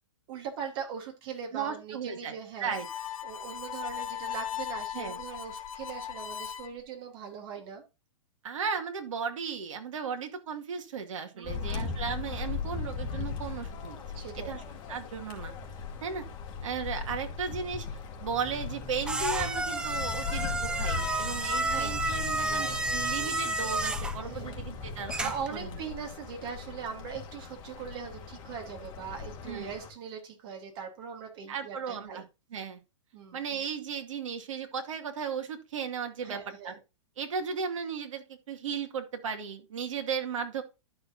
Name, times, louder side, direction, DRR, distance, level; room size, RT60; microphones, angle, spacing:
voice 1, 0.3-2.7 3.2-7.8 11.3-12.1 14.1-14.6 21.6-22.0 22.3-22.7 24.2-24.6 25.2-32.2 33.1-33.4 36.2-36.8, right 7 dB, 45° right, 2 dB, 3.3 m, -40 dB
voice 2, 1.5-2.9 4.9-5.2 8.4-14.0 14.4-14.6 14.9-15.5 16.0-16.2 16.6-17.9 18.2-25.8 29.5-29.7 31.5-32.3 32.5-32.8 33.3-36.7 37.2-40.6, right 6 dB, 70° right, 5 dB, 2.3 m, -35 dB
Harmonica, 2.6-6.7, left 9 dB, 80° left, 1.2 m, -38 dB
sound 1, 11.4-29.9, left 6 dB, 25° left, 2.4 m, -38 dB
sound 2, 18.3-25.6, right 2 dB, 5° right, 0.6 m, -32 dB
12.0 x 6.2 x 2.7 m, 0.26 s
hypercardioid pair, 150°, 17 cm